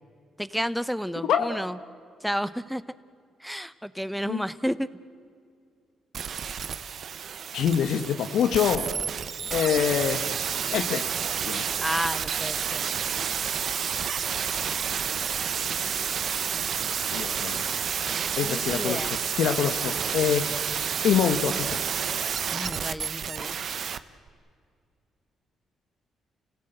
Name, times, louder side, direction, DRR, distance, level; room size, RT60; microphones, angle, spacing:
voice 1, 0.4-1.8 2.2-2.8 3.4-4.9 11.8-12.8 18.4-19.2 22.5-23.6, equal, ahead, 15 dB, 0.8 m, -31 dB
sound 1, 6.1-24.0 24.3-24.4, right 7 dB, 55° right, 0.9 m, -30 dB
voice 2, 7.5-8.9 9.5-10.3 10.7-11.1 11.4-11.8 17.1-17.8 18.4-20.5 21.0-21.8, left 8 dB, 75° left, 8 dB, 1.1 m, -25 dB
30.0 x 17.0 x 8.0 m, 2.3 s
cardioid pair, 90°, 0 cm